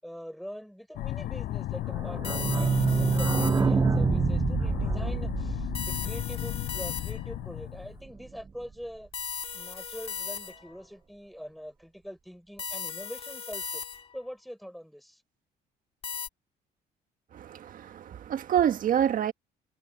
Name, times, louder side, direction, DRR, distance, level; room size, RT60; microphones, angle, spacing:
voice 1, 0.0-9.1 9.5-13.8 14.1-15.2, equal, ahead, 6.0 m, -43 dB
sound 1, 0.9-8.0, left 15 dB, 75° left, 4.7 m, -34 dB
sound 2, 1.9-7.4 7.7-7.8 8.0-8.1 8.4-8.5, right 5 dB, 20° right, 0.3 m, -27 dB
sound 3, 2.2-3.9 5.7-7.4 9.1-10.8 12.6-14.3 16.0-16.3, left 6 dB, 35° left, 2.5 m, -37 dB
voice 2, 17.3-19.3, right 9 dB, 55° right, 1.7 m, -27 dB
cardioid pair, 110°, 17 cm